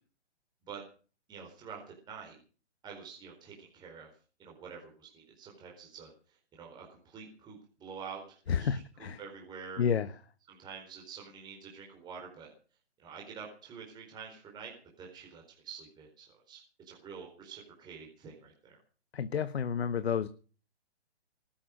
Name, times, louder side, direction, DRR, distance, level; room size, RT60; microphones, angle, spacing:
voice 1, 1.3-1.8 2.1-2.4 2.8-4.1 4.4-6.1 6.6-9.8 10.5-12.5 13.0-14.7 15.0-18.8, right 6 dB, 10° right, -1 dB, 4.4 m, -47 dB
voice 2, 8.5-9.2 9.8-10.1 19.1-20.3, left 7 dB, 65° left, 13 dB, 1.3 m, -30 dB
19.0 x 11.5 x 6.4 m, 0.39 s
hypercardioid pair, 155°, 34 cm